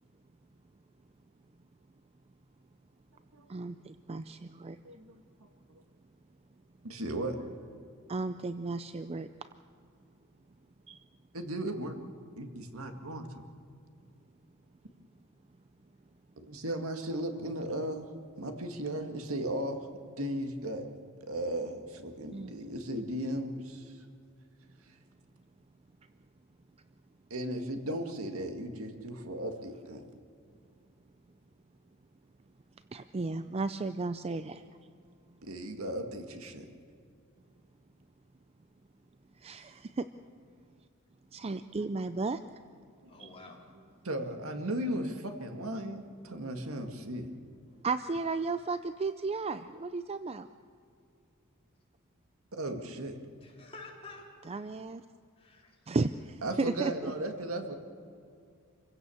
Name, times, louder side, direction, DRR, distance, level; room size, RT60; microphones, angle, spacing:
voice 1, 3.5-4.8 8.1-9.5 10.9-11.0 22.3-22.6 32.9-34.6 39.4-40.1 41.3-42.4 43.2-43.3 47.8-50.5 54.5-55.0 55.9-57.1, right 3 dB, 30° right, 11 dB, 0.5 m, -34 dB
voice 2, 6.8-7.4 11.3-12.0 12.4-13.5 16.4-18.1 18.4-19.9 20.2-20.8 21.2-23.9 27.3-30.1 34.6-34.7 35.4-36.7 41.8-41.9 43.1-43.3 44.0-47.3 52.5-53.2 56.4-57.8, right 1 dB, 75° right, 5 dB, 2.0 m, -36 dB
voice 3, 43.1-43.6 48.7-48.8 53.4-54.7 55.4-55.8, left 3 dB, 30° left, -1 dB, 3.9 m, -50 dB
27.0 x 16.5 x 7.1 m, 2.4 s
head